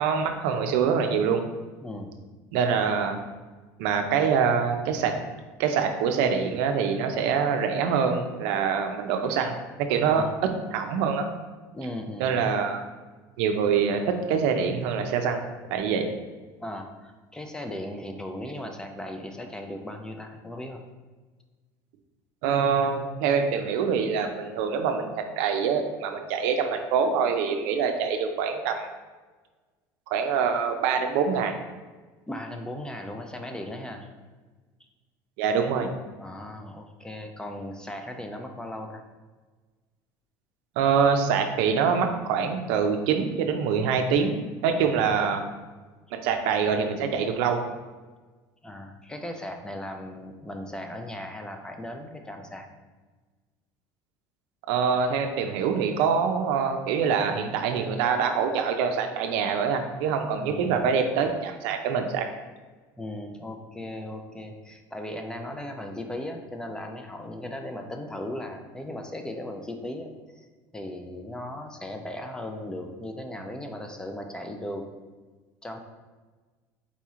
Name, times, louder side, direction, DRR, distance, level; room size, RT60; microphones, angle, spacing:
voice 1, 0.0-1.4 2.5-3.2 3.8-5.1 5.6-10.3 10.7-11.3 12.2-12.8 13.4-15.5 15.7-16.1 22.4-28.9 30.1-31.5 35.4-35.9 40.8-44.3 44.6-45.4 46.1-47.6 54.7-62.3, right 6 dB, 75° right, 5 dB, 0.5 m, -25 dB
voice 2, 1.8-2.2 10.1-10.4 11.7-12.5 16.6-20.8 32.3-34.1 36.2-39.0 44.8-45.1 48.6-52.7 60.5-60.9 63.0-70.1 70.4-70.5 70.7-74.8 75.6-75.8, left 1 dB, 10° left, 4 dB, 0.4 m, -37 dB
4.1 x 2.9 x 3.6 m, 1.3 s
supercardioid pair, 115°, 9 cm